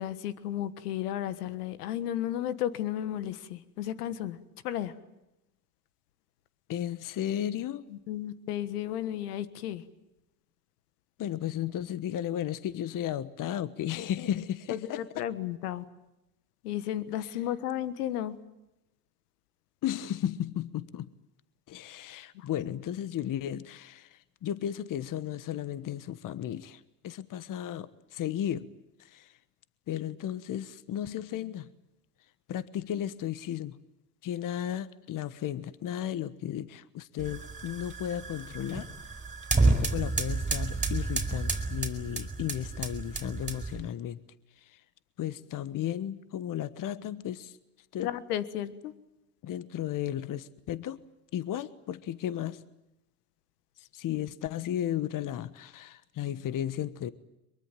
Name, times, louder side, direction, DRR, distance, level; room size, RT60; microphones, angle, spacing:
voice 1, 0.0-4.4 4.6-4.9 7.9-9.8 14.7-15.8 16.6-18.4 22.3-22.5 48.0-48.9, left 11 dB, 90° left, 15 dB, 1.5 m, -33 dB
voice 2, 6.7-7.8 11.2-15.0 17.2-17.4 19.8-21.1 21.7-28.7 29.0-29.4 29.9-31.7 32.5-33.8 34.2-38.9 39.6-44.2 44.6-44.8 45.2-47.6 47.9-48.1 49.4-51.0 51.3-52.6 53.8-57.1, left 11 dB, 45° left, 16 dB, 1.3 m, -34 dB
sound 1, 37.2-43.9, right 3 dB, 15° right, 4.6 m, -30 dB
23.5 x 22.5 x 9.1 m, 0.92 s
supercardioid pair, 90°, 45 cm